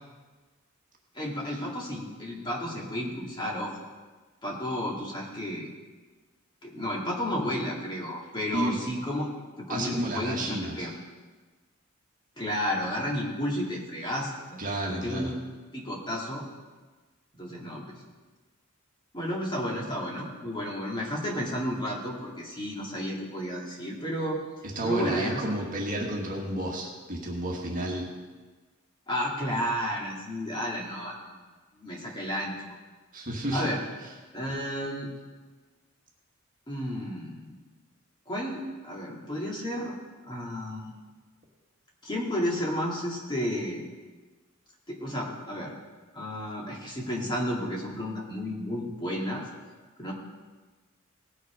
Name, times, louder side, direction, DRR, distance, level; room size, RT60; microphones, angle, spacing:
voice 1, 1.1-3.9 4.4-5.7 6.6-9.3 9.7-10.9 12.4-14.6 14.9-15.4 15.7-16.4 17.4-18.0 19.1-24.4 24.8-25.7 29.1-31.4 31.8-32.7 33.5-33.8 34.3-35.1 36.7-37.5 38.3-40.0 40.2-41.0 42.0-43.8 44.9-45.7 46.1-49.5 50.0-50.1, equal, 20° left, -3 dB, 2.2 m, -32 dB
voice 2, 9.7-10.9 14.6-15.3 24.8-28.1 33.1-33.7, right 1 dB, 40° right, -1 dB, 1.8 m, -31 dB
18.5 x 6.3 x 5.0 m, 1.3 s
head